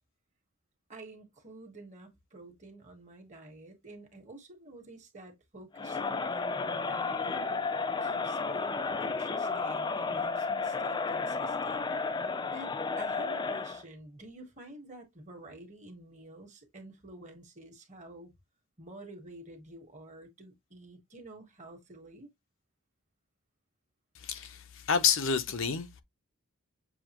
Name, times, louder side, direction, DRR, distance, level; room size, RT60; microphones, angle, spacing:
voice 1, 0.9-7.4 8.0-11.9 12.5-12.7 13.0-18.3 18.8-22.3, right 2 dB, 30° right, 1.5 m, -49 dB
Crowd, 5.7-13.8, left 4 dB, 20° left, 0.3 m, -32 dB
voice 2, 24.1-26.0, left 6 dB, 60° left, 0.7 m, -29 dB
7.0 x 2.5 x 3.0 m
head